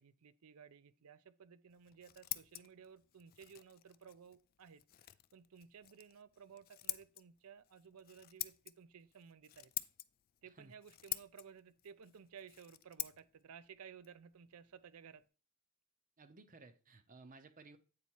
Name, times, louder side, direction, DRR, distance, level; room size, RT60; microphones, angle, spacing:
voice 1, 0.0-9.7 10.4-15.2, right 7 dB, 75° right, 0.5 m, -57 dB
Scissors, 1.7-15.3, left 15 dB, 40° left, 0.3 m, -49 dB
voice 2, 16.2-17.8, right 3 dB, 35° right, 0.7 m, -58 dB
8.5 x 4.1 x 4.5 m
head